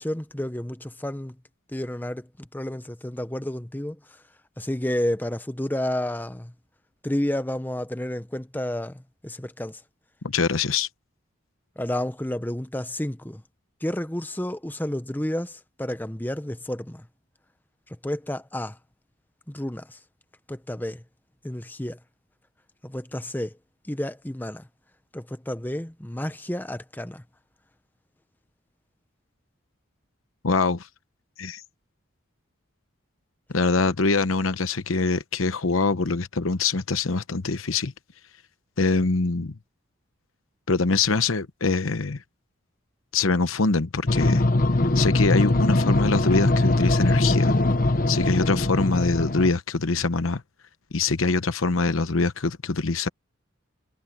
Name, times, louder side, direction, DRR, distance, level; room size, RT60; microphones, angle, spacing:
voice 1, 0.0-1.3 1.7-4.0 4.6-6.5 7.0-9.8 11.8-13.4 13.8-17.1 18.0-18.8 19.5-20.0 20.5-21.0 21.4-22.0 22.8-23.6 23.9-24.7 25.1-27.2, left 1 dB, 10° left, 0.8 m, -30 dB
voice 2, 10.2-10.9 30.4-30.9 31.4-31.6 33.5-37.9 38.8-39.5 40.7-42.2 43.1-44.4 44.9-47.5 48.1-50.4 50.9-53.1, left 3 dB, 85° left, 1.0 m, -24 dB
sound 1, 44.1-49.5, left 2 dB, 40° left, 0.9 m, -21 dB
head